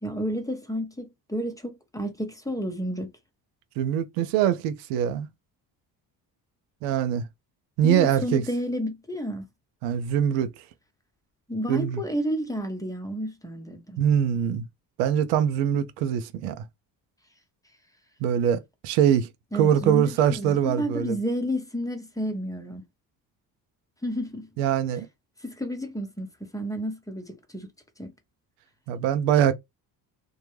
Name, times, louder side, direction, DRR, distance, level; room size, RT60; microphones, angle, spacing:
voice 1, 0.0-3.1 7.8-9.4 11.5-14.0 19.5-22.8 24.0-24.5 25.4-26.3 26.5-27.7 28.0-28.1, equal, 5° left, 0.6 m, -31 dB
voice 2, 3.8-5.3 6.8-7.3 7.8-8.4 9.8-10.5 11.7-12.0 14.0-14.6 15.0-16.6 18.2-19.3 19.5-21.1 24.6-25.1 28.9-29.5, right 9 dB, 85° right, 0.6 m, -23 dB
2.2 x 2.0 x 3.0 m
hypercardioid pair, 60°, 48 cm